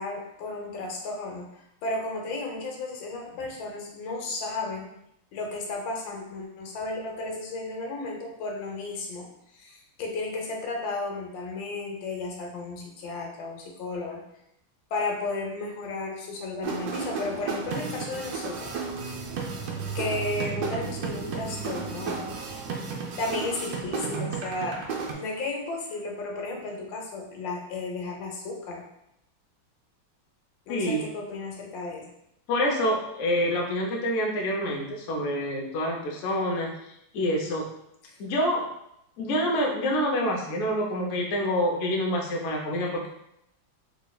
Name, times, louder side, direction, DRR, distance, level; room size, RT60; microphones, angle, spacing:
voice 1, 0.0-1.5 1.8-4.9 5.3-9.3 9.5-14.2 14.9-18.8 19.9-22.3 23.2-24.8 25.1-28.8 30.7-32.0 38.1-38.2, left 3 dB, 75° left, 0 dB, 1.4 m, -33 dB
sound 1, 16.6-25.1, right 5 dB, 70° right, 0.9 m, -33 dB
voice 2, 30.7-31.1 32.5-36.7 37.1-37.6 38.2-38.6 39.2-43.1, equal, 90° left, -1 dB, 0.6 m, -27 dB
3.5 x 3.1 x 2.3 m, 0.79 s
omnidirectional pair, 2.2 m